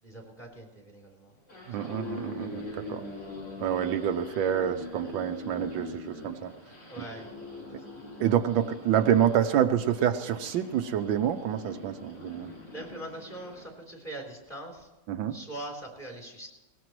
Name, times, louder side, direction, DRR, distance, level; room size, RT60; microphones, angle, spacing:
voice 1, 0.0-1.4 1.7-1.9 6.9-8.0 12.7-14.9 15.3-16.5, right 1 dB, 20° left, 0 dB, 3.6 m, -42 dB
sound 1, 1.3-13.7, left 2 dB, 65° left, 6.2 m, -42 dB
voice 2, 1.7-3.0 3.6-6.5 7.7-7.8 8.2-12.5 15.1-15.3, right 10 dB, 80° right, 7 dB, 1.4 m, -27 dB
21.0 x 19.0 x 3.1 m, 1.1 s
omnidirectional pair, 2.1 m